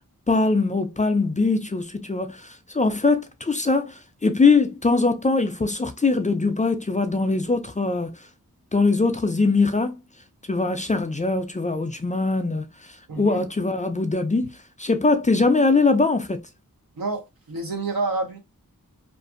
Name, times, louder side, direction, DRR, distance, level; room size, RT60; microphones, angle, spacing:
voice 1, 0.3-8.1 8.7-9.9 10.5-12.7 13.2-16.4, left 3 dB, 20° left, 0.3 m, -22 dB
voice 2, 13.1-13.4 17.0-18.4, right 3 dB, 85° right, 0.9 m, -28 dB
2.5 x 2.4 x 2.5 m
wide cardioid pair, 60°, 34 cm